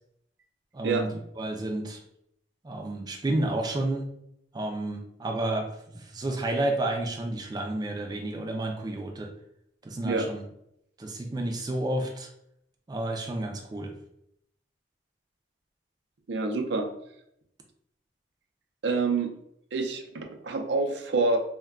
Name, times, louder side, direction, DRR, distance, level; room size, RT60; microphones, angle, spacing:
voice 1, 0.7-2.0 2.6-4.1 4.5-9.3 9.8-10.4 11.0-12.3 12.9-13.9, right 1 dB, 25° right, 2 dB, 0.3 m, -31 dB
voice 2, 16.3-16.9 18.8-19.3 19.7-21.4, right 3 dB, 85° right, 4 dB, 0.5 m, -27 dB
2.2 x 2.2 x 3.4 m, 0.75 s
head